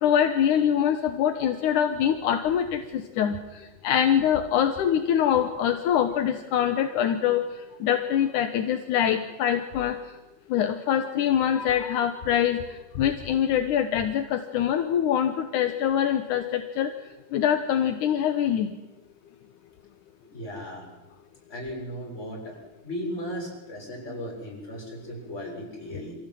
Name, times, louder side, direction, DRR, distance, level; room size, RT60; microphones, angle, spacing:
voice 1, 0.0-3.4 3.8-7.4 7.8-10.0 10.5-12.6 13.0-16.9 17.3-18.7, left 9 dB, 70° left, 7 dB, 1.9 m, -24 dB
voice 2, 20.3-20.9 21.5-22.6 22.8-26.2, equal, 15° left, -1 dB, 7.2 m, -36 dB
26.5 x 15.5 x 9.2 m, 1.0 s
omnidirectional pair, 4.9 m